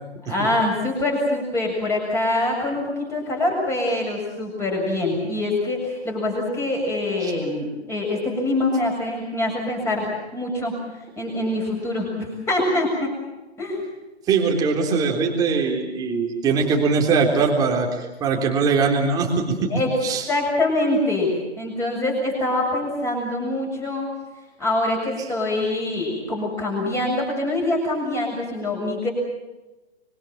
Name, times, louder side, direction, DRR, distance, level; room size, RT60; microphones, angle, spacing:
voice 1, 0.3-10.7 11.2-13.1 13.6-13.8 19.7-20.0 20.3-24.1 24.6-29.1, left 2 dB, 10° left, 1 dB, 7.3 m, -24 dB
voice 2, 14.3-19.6 20.0-20.2, right 4 dB, 10° right, 1 dB, 3.6 m, -21 dB
26.0 x 25.0 x 7.6 m, 1.1 s
hypercardioid pair, 160°, 33 cm